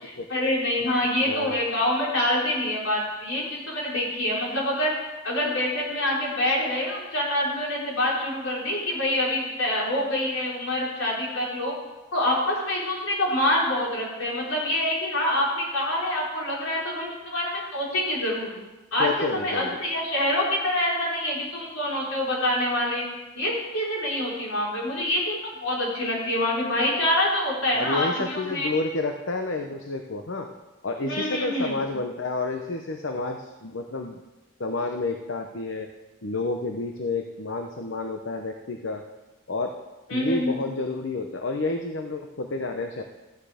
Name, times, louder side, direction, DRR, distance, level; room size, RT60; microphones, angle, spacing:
voice 1, 0.3-4.9 5.2-11.7 12.1-18.5 18.9-23.0 23.3-28.7 31.0-31.8 40.1-40.6, left 1 dB, 85° left, -4 dB, 4.4 m, -26 dB
voice 2, 1.2-1.6 19.0-19.8 27.7-30.5 30.8-34.2 34.6-35.9 36.2-39.0 39.5-39.7 40.1-43.0, left 3 dB, 65° left, 4 dB, 0.8 m, -30 dB
14.5 x 9.2 x 5.0 m, 1.1 s
head